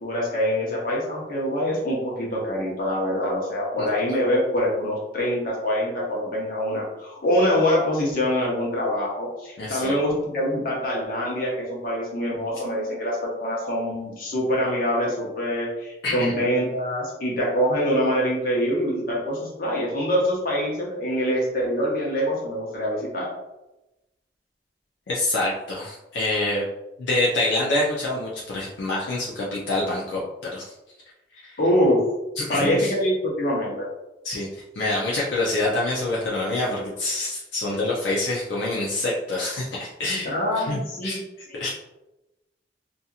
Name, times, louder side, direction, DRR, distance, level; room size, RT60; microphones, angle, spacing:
voice 1, 0.0-23.3 31.6-32.0 32.5-33.9 40.2-41.2 41.5-41.7, equal, 55° left, -4 dB, 0.9 m, -24 dB
voice 2, 9.6-9.9 16.0-16.3 25.1-26.6 27.0-30.7 31.3-31.6 32.4-32.9 34.2-34.5 34.8-41.2 41.6-41.7, left 2 dB, 80° left, -5 dB, 0.5 m, -26 dB
2.7 x 2.5 x 2.4 m, 0.96 s
head